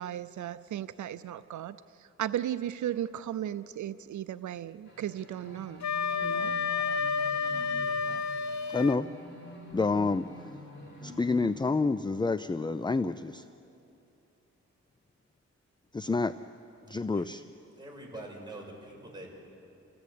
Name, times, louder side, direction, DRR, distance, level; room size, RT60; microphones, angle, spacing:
voice 1, 0.0-1.7 2.2-5.8 6.2-6.5, right 11 dB, 85° right, 14 dB, 0.5 m, -35 dB
sound 1, 4.9-11.4, left 1 dB, 40° left, 5.2 m, -47 dB
Wind instrument woodwind instrument, 5.8-9.0, left 5 dB, 70° left, 0.9 m, -30 dB
voice 2, 8.7-9.1 9.7-10.3 11.0-13.4 15.9-16.3 16.9-17.4, left 3 dB, 15° left, 13 dB, 0.5 m, -28 dB
voice 3, 17.8-19.4, right 1 dB, 15° right, -1 dB, 6.3 m, -44 dB
28.5 x 16.0 x 8.4 m, 2.8 s
cardioid pair, 80°, 29 cm